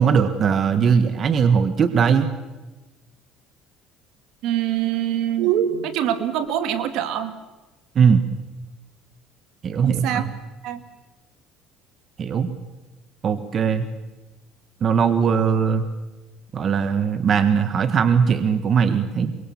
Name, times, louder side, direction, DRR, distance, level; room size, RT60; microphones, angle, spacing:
voice 1, 0.0-2.3 7.9-8.2 9.6-10.2 12.2-12.5 13.2-13.9 14.8-15.8 16.5-19.4, right 6 dB, 40° right, 9 dB, 1.6 m, -19 dB
voice 2, 4.4-7.4 9.8-10.3 10.6-10.8, right 11 dB, 70° right, 9 dB, 2.3 m, -24 dB
24.0 x 22.5 x 7.3 m, 1.2 s
cardioid pair, 115°, 0 cm